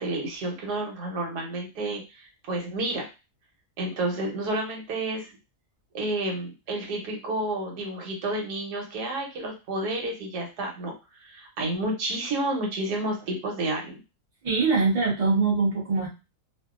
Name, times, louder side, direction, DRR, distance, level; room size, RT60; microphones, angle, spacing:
voice 1, 0.0-3.1 3.8-5.4 5.9-10.9 11.2-14.0, right 2 dB, 90° right, 1 dB, 1.4 m, -30 dB
voice 2, 14.4-16.1, right 4 dB, 30° right, -4 dB, 0.7 m, -23 dB
2.7 x 2.4 x 2.4 m, 0.29 s
omnidirectional pair, 1.7 m